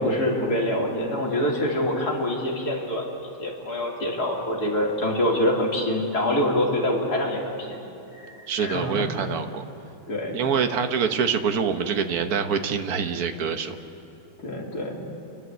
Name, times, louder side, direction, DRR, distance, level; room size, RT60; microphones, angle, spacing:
voice 1, 0.0-3.0 3.4-7.8 8.1-9.1 10.1-10.4 14.4-15.0, left 1 dB, 50° left, -2 dB, 3.3 m, -25 dB
voice 2, 8.5-9.6 10.3-13.8, right 6 dB, 55° right, 7 dB, 1.3 m, -25 dB
29.0 x 11.5 x 8.0 m, 3.0 s
omnidirectional pair, 2.2 m